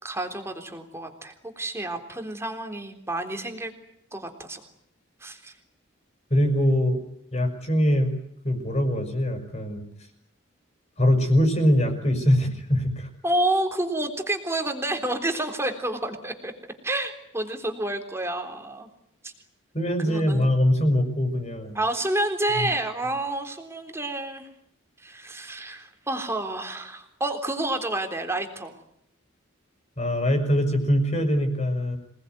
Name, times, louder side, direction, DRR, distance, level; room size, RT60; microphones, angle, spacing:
voice 1, 0.0-3.7 4.1-4.6 5.2-5.5 13.2-16.5 16.8-18.9 19.2-19.3 20.1-20.5 21.7-24.5 25.0-28.7, right 1 dB, 15° right, 5 dB, 3.5 m, -29 dB
voice 2, 6.3-7.0 7.3-8.1 8.4-9.8 11.0-13.1 19.7-21.8 22.6-22.7 30.0-32.0, equal, 35° left, 5 dB, 6.0 m, -22 dB
27.0 x 20.0 x 9.4 m, 0.74 s
head